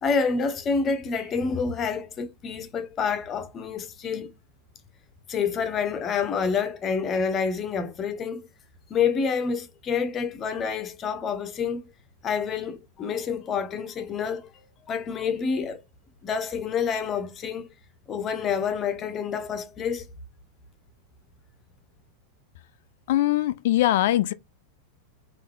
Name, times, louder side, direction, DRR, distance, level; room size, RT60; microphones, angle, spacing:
voice 1, 0.0-4.3 5.3-8.5 8.9-11.9 12.2-14.5 14.9-15.8 16.2-17.7 18.1-20.1, left 6 dB, 25° left, 0.7 m, -28 dB
voice 2, 23.1-24.3, left 14 dB, 55° left, 0.3 m, -22 dB
3.5 x 2.6 x 3.4 m
figure-of-eight pair, 90°, 0 cm